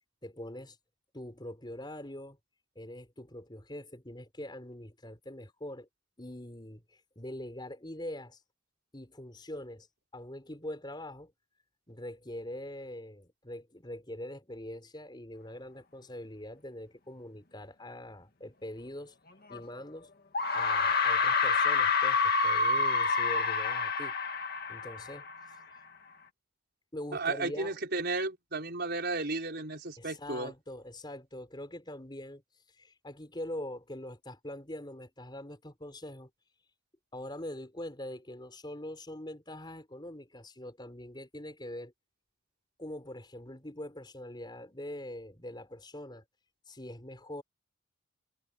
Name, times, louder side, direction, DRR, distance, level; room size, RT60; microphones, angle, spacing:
voice 1, 0.2-0.8 1.1-2.4 2.7-5.9 6.2-8.4 8.9-9.9 10.1-11.3 11.9-19.1 19.5-20.1 20.5-24.1 24.7-25.3 26.9-27.7 30.0-32.4 32.7-36.3 37.1-41.9 42.8-46.2 46.7-47.4, left 1 dB, 20° left, 4.4 m, -43 dB
sound 1, 19.5-19.6 20.3-25.6, left 4 dB, 50° left, 2.2 m, -28 dB
voice 2, 27.1-30.5, right 3 dB, 55° right, 5.7 m, -33 dB
head